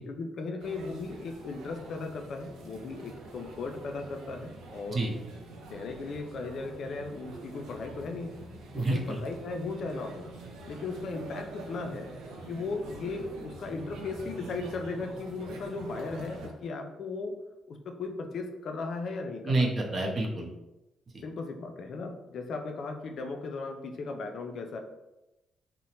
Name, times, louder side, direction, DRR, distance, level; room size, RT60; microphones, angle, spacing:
voice 1, 0.1-5.0 5.7-8.3 8.7-10.3 10.7-12.1 12.5-17.4 17.7-19.7 21.2-24.8, left 3 dB, 60° left, 4 dB, 0.4 m, -37 dB
sound 1, 0.6-16.5, right 2 dB, 90° right, 0.4 m, -45 dB
voice 2, 8.7-9.2 19.5-20.5, right 2 dB, 40° right, 0 dB, 0.6 m, -28 dB
2.8 x 2.0 x 2.8 m, 0.98 s
cardioid pair, 90°, 0 cm